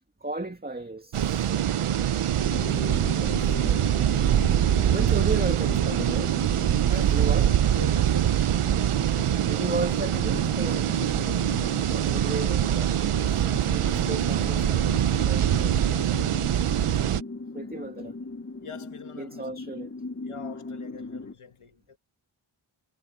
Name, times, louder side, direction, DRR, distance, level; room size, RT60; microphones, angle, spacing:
voice 1, 0.2-4.4 4.9-6.4 7.1-7.4 9.5-11.2 11.9-12.9 13.2-16.2 17.5-18.2 19.2-19.9, right 2 dB, 20° right, 2.0 m, -36 dB
sound 1, 1.1-17.2, right 10 dB, 85° right, 0.7 m, -24 dB
sound 2, 2.4-21.3, left 3 dB, 25° left, 0.9 m, -39 dB
voice 2, 6.8-8.5 17.4-17.9 18.6-19.5 20.2-22.0, left 5 dB, 85° left, 2.0 m, -44 dB
cardioid pair, 45°, 49 cm